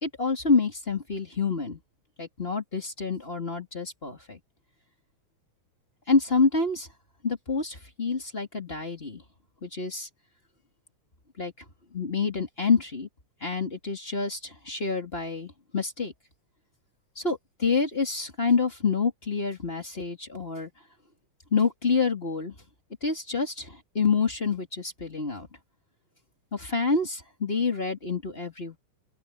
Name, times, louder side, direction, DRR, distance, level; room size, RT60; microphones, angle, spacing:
voice 1, 0.0-1.8 2.2-4.4 6.1-6.9 7.2-9.2 9.6-10.1 11.4-11.5 11.9-13.1 13.4-16.1 17.2-20.7 21.5-22.5 23.0-25.5 26.5-28.8, left 4 dB, 20° left, 2.6 m, -27 dB
open air
omnidirectional pair, 3.7 m